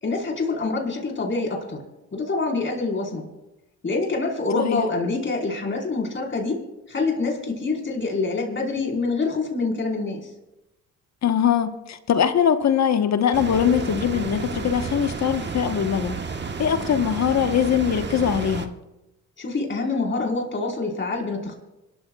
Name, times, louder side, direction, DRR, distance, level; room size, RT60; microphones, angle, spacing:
voice 1, 0.0-1.8 2.1-3.3 3.8-10.3 19.4-21.6, left 3 dB, 35° left, 4.6 m, -26 dB
voice 2, 11.2-16.2 16.6-18.7, left 8 dB, 55° left, 1.3 m, -22 dB
sound 1, 13.3-18.7, right 5 dB, 35° right, 1.3 m, -31 dB
26.0 x 13.5 x 2.4 m
supercardioid pair, 70°, 33 cm